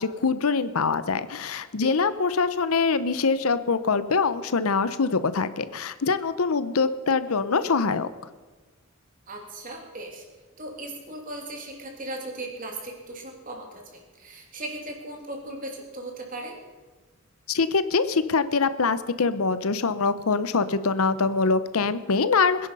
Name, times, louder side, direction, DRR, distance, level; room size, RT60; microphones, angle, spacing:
voice 1, 0.0-8.1 17.5-22.7, left 4 dB, 80° left, 13 dB, 0.8 m, -24 dB
voice 2, 9.3-10.2 10.6-16.6, right 2 dB, 40° right, 1 dB, 2.9 m, -37 dB
22.0 x 10.5 x 5.5 m, 1.3 s
head